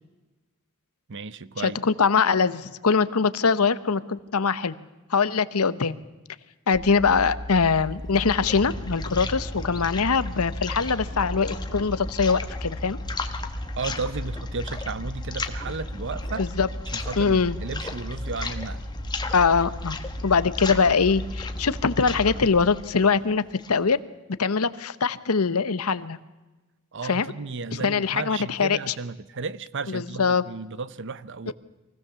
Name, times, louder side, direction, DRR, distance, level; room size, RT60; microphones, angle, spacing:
voice 1, 1.1-1.8 13.8-16.5 16.9-18.8 26.9-31.5, right 4 dB, 55° right, 0.7 m, -34 dB
voice 2, 1.6-4.7 5.1-6.0 6.7-13.0 16.4-16.7 17.2-17.6 19.3-24.0 24.4-26.2 27.0-27.3 27.7-28.9 29.9-30.4 31.5-31.6, left 5 dB, 80° left, 0.9 m, -23 dB
sound 1, 6.7-22.6, left 1 dB, 75° right, 3.2 m, -36 dB
sound 2, 7.8-23.9, left 2 dB, 20° left, 1.3 m, -36 dB
24.0 x 17.0 x 7.0 m
head